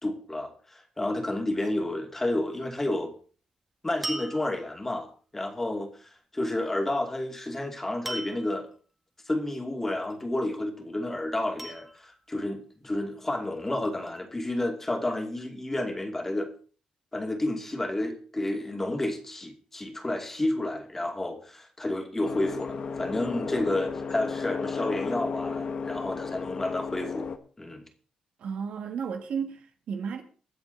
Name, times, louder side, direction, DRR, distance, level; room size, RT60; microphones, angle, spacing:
voice 1, 0.0-3.1 3.8-8.7 9.3-16.5 17.1-27.3 27.6-27.8, left 1 dB, 15° left, 2.6 m, -31 dB
sound 1, 4.0-4.9 8.1-8.7 10.0-10.5 11.6-12.4 13.3-14.2, right 1 dB, 10° right, 2.0 m, -39 dB
sound 2, 22.2-27.4, left 5 dB, 50° left, 1.4 m, -33 dB
voice 2, 28.4-30.2, right 6 dB, 75° right, 2.0 m, -33 dB
22.5 x 7.8 x 4.0 m
cardioid pair, 125°, 2 cm